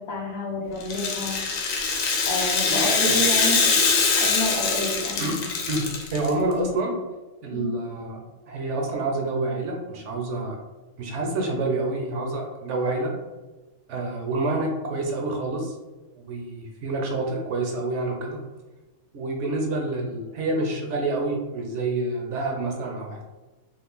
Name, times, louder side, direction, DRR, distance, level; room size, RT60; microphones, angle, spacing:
voice 1, 0.0-1.4 2.3-3.7 4.2-5.2 7.5-7.8, left 1 dB, 55° left, -2 dB, 0.9 m, -29 dB
Rattle (instrument), 0.8-6.3, left 5 dB, 90° left, 1.0 m, -23 dB
voice 2, 2.7-3.2 5.2-5.3 5.7-6.9 7.4-10.6 11.0-13.1 13.9-15.7 16.2-18.4 19.1-23.2, right 2 dB, 70° right, 1 dB, 0.9 m, -28 dB
2.5 x 2.4 x 3.6 m, 1.2 s
omnidirectional pair, 1.4 m